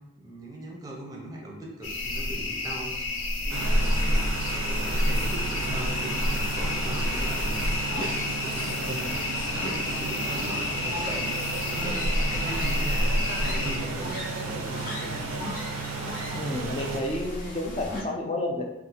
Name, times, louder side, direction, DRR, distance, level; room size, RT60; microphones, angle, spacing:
voice 1, 0.2-4.4 4.6-7.7 8.2-9.3 9.6-11.4 11.6-15.3, right 1 dB, 20° right, -2 dB, 0.6 m, -39 dB
sound 1, 1.8-13.8, left 1 dB, 75° left, 0.6 m, -28 dB
sound 2, 3.5-17.0, right 4 dB, 85° right, 0.5 m, -34 dB
sound 3, 6.2-18.0, left 1 dB, 45° left, 0.8 m, -38 dB
voice 2, 16.3-18.6, left 1 dB, 30° left, 1 dB, 0.4 m, -30 dB
2.7 x 2.4 x 4.0 m, 0.91 s
head